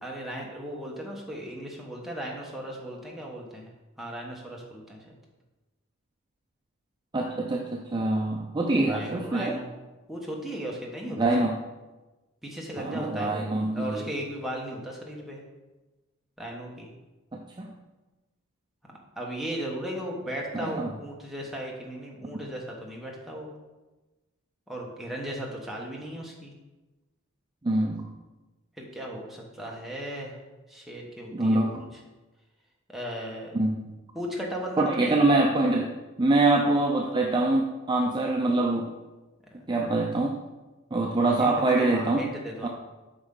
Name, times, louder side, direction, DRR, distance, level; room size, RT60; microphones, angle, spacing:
voice 1, 0.0-3.7 4.0-5.1 8.9-9.7 10.1-11.4 12.4-13.5 13.7-15.4 16.4-16.9 19.2-23.5 24.7-26.5 28.8-30.4 30.7-31.6 32.9-33.5 34.1-35.3 39.5-39.6 41.4-42.7, equal, ahead, -2 dB, 1.1 m, -36 dB
voice 2, 7.1-9.6 11.2-11.6 12.8-14.1 17.3-17.7 20.5-20.9 22.2-22.4 27.6-28.1 31.3-31.8 33.5-33.9 34.8-35.9 36.2-38.9 39.7-40.3 40.9-42.3 42.6-42.7, right 2 dB, 20° right, 0 dB, 0.5 m, -24 dB
8.0 x 5.3 x 3.8 m, 1.1 s
head